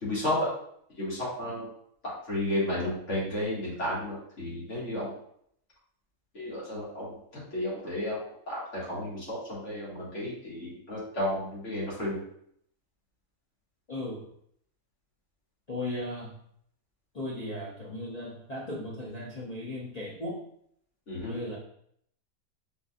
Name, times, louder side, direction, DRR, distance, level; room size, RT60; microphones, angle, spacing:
voice 1, 0.0-0.5 1.0-1.7 2.3-5.2 6.3-7.1 7.5-8.2 8.5-12.2 21.1-21.4, left 1 dB, 55° left, -8 dB, 2.2 m, -32 dB
voice 2, 13.9-14.2 15.7-16.4 17.1-20.4 21.3-21.6, left 1 dB, 35° left, -7 dB, 0.6 m, -36 dB
5.2 x 3.9 x 2.4 m, 0.69 s
omnidirectional pair, 1.5 m